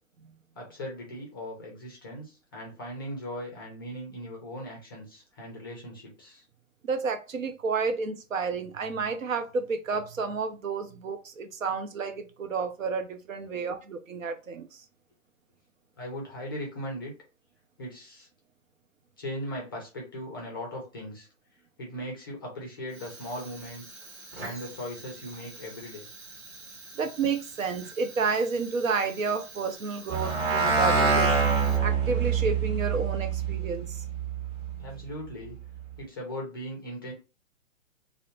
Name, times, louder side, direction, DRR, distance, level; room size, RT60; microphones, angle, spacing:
voice 1, 0.6-6.4 16.0-17.1 17.8-18.3 19.2-21.3 21.8-24.0 24.4-26.1 34.8-35.6 36.0-37.1, equal, 20° left, 0.4 m, -38 dB
voice 2, 6.8-14.8 27.0-31.3 31.8-34.0, right 4 dB, 75° right, 0.6 m, -30 dB
Fire, 22.8-32.2, right 3 dB, 25° right, 0.9 m, -46 dB
sound 1, 30.1-34.8, right 5 dB, 40° right, 1.5 m, -26 dB
2.7 x 2.0 x 2.8 m
figure-of-eight pair, 125°, 39 cm